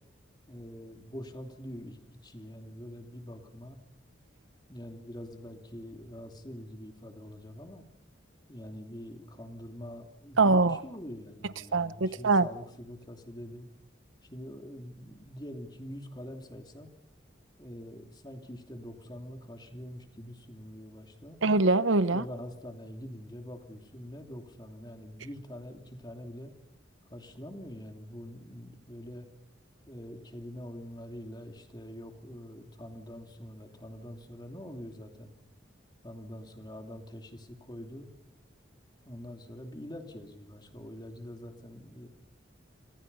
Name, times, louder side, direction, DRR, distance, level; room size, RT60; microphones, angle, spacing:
voice 1, 0.5-3.8 4.7-7.8 8.5-13.7 14.2-16.9 17.6-21.4 22.1-26.5 27.1-29.3 29.9-35.3 36.0-38.1 39.0-42.1, equal, 20° left, 2.9 m, -44 dB
voice 2, 10.4-10.8 11.7-12.5 21.4-22.2, right 3 dB, 85° right, 0.9 m, -23 dB
27.5 x 27.0 x 5.6 m
head